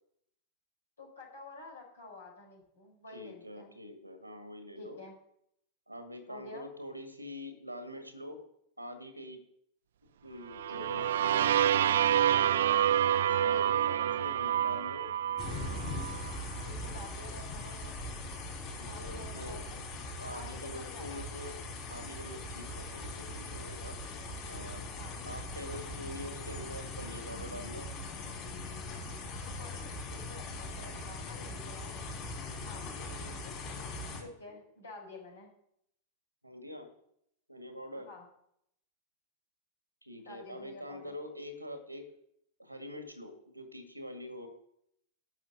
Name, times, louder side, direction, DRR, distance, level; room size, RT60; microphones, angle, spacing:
voice 1, 1.0-3.8 4.8-5.1 6.3-6.7 10.7-11.2 13.1-13.9 16.6-18.2 18.8-19.8 20.3-21.3 24.9-25.2 29.2-32.0 32.6-33.6 34.2-35.5 37.9-38.3 40.2-41.2, left 2 dB, 75° left, 0 dB, 4.2 m, -50 dB
voice 2, 3.1-5.0 5.9-8.4 8.8-9.4 10.2-11.9 12.5-13.0 13.4-15.1 18.8-19.6 20.2-21.6 21.9-24.0 24.5-24.9 25.2-27.9 32.8-33.4 34.5-34.6 36.4-36.9 37.5-38.1 40.0-42.1 42.6-44.5, left 1 dB, 90° right, 7 dB, 2.0 m, -45 dB
sound 1, 10.5-16.4, right 10 dB, 60° right, 0.4 m, -28 dB
sound 2, 15.4-34.2, left 2 dB, 35° left, 4.3 m, -41 dB
sound 3, 18.1-29.3, left 1 dB, 55° left, 2.4 m, -53 dB
12.0 x 6.3 x 7.8 m, 0.73 s
figure-of-eight pair, 90°, 0 cm